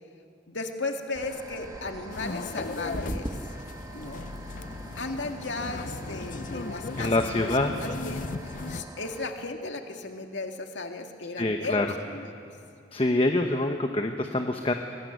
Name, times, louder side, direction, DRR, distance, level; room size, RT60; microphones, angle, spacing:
voice 1, 0.5-3.3 3.9-4.2 5.0-7.1 7.4-12.5, left 3 dB, 80° left, 4 dB, 2.0 m, -36 dB
sound 1, 1.1-9.3, right 1 dB, 20° right, 1.3 m, -41 dB
sound 2, 2.1-8.8, left 3 dB, 45° left, 0.5 m, -37 dB
voice 2, 7.0-7.7 11.4-11.9 12.9-14.7, left 2 dB, 30° left, 5 dB, 1.0 m, -25 dB
24.5 x 20.0 x 9.2 m, 2.5 s
head